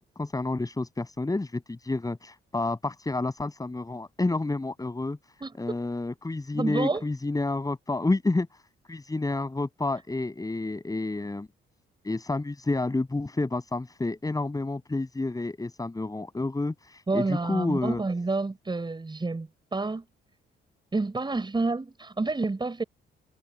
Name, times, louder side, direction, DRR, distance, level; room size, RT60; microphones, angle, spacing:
voice 1, 0.0-5.2 5.6-8.6 8.9-11.5 12.0-18.0, left 2 dB, 20° left, 7.9 m, -29 dB
voice 2, 6.5-7.1 17.1-20.0 20.9-22.8, right 3 dB, 20° right, 7.5 m, -29 dB
cardioid pair, 90°, 20 cm